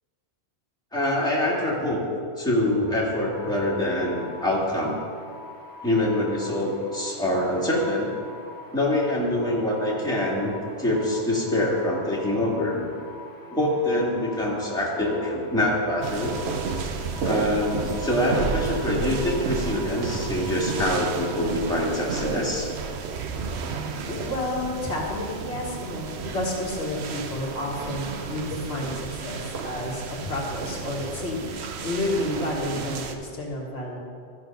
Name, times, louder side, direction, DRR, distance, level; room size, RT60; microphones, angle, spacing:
voice 1, 0.9-2.0 2.4-5.0 5.8-8.1 8.7-12.9 13.5-16.3 17.2-22.7, left 1 dB, 5° left, -5 dB, 1.9 m, -25 dB
sound 1, 3.3-21.7, left 3 dB, 20° left, 1.1 m, -43 dB
sound 2, 16.0-33.1, right 5 dB, 75° right, 1.0 m, -32 dB
voice 2, 24.1-34.0, left 1 dB, 70° left, -2 dB, 1.8 m, -30 dB
13.0 x 6.5 x 5.3 m, 2.3 s
omnidirectional pair, 1.1 m